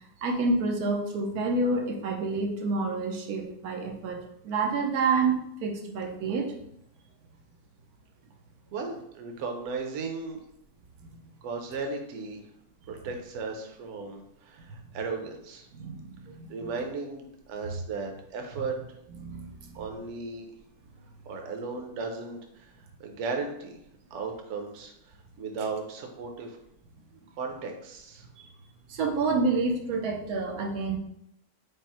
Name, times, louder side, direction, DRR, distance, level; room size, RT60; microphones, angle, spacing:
voice 1, 0.2-4.2 4.4-6.5 15.7-16.7 19.2-19.9 28.4-28.5 28.9-31.0, right 3 dB, 90° right, 1 dB, 1.2 m, -28 dB
voice 2, 8.7-10.4 11.4-12.4 12.9-15.7 16.5-19.0 19.7-20.5 21.3-23.8 24.1-26.6 27.4-28.3, right 4 dB, 60° right, 2 dB, 0.9 m, -36 dB
5.3 x 2.0 x 4.3 m, 0.77 s
omnidirectional pair, 1.6 m